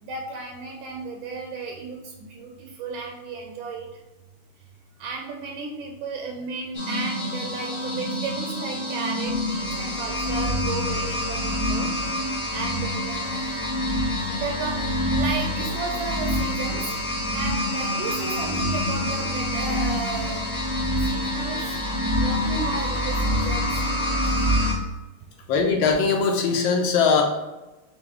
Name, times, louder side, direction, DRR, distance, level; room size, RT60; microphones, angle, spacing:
voice 1, 0.0-4.0 5.0-11.9 12.5-13.2 14.3-16.9 17.3-20.4 21.0-21.8 22.2-23.8 25.3-25.4, right 4 dB, 85° right, 1 dB, 1.4 m, -34 dB
sound 1, 6.7-24.7, left 1 dB, 40° left, 0.4 m, -26 dB
voice 2, 25.5-27.2, left 5 dB, 80° left, 2 dB, 1.4 m, -20 dB
5.9 x 2.1 x 3.4 m, 1.1 s
omnidirectional pair, 2.2 m